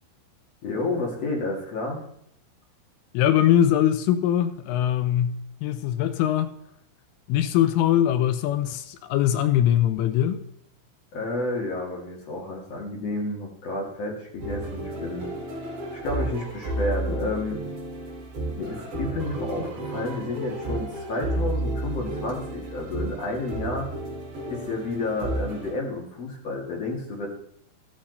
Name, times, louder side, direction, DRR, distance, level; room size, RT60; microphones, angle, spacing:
voice 1, 0.6-2.0 11.1-15.3 15.9-17.6 18.6-23.9 24.5-27.3, left 2 dB, 45° left, 2.2 m, -30 dB
voice 2, 3.1-6.5 7.3-10.4, left 11 dB, 85° left, 3.1 m, -22 dB
sound 1, 14.4-25.7, right 2 dB, 60° right, 6.0 m, -32 dB
14.0 x 13.0 x 4.1 m
omnidirectional pair, 5.9 m